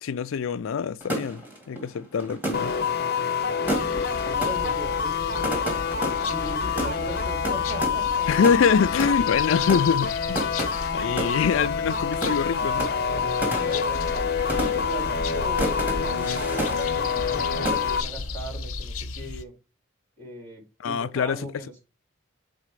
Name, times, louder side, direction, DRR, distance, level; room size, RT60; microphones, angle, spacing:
voice 1, 0.0-2.8 8.3-10.5 10.9-12.9 20.8-21.4, left 6 dB, 65° left, 0.4 m, -24 dB
sound 1, 1.0-17.4 17.7-18.2, right 1 dB, 10° right, 1.9 m, -33 dB
sound 2, 2.5-18.0, left 6 dB, 45° left, 0.8 m, -27 dB
sound 3, 3.6-19.4, left 4 dB, 80° left, 0.8 m, -36 dB
voice 2, 4.1-5.6 6.3-8.3 13.5-19.5 20.2-21.8, right 1 dB, 55° right, 4.5 m, -39 dB
6.7 x 4.2 x 4.9 m
head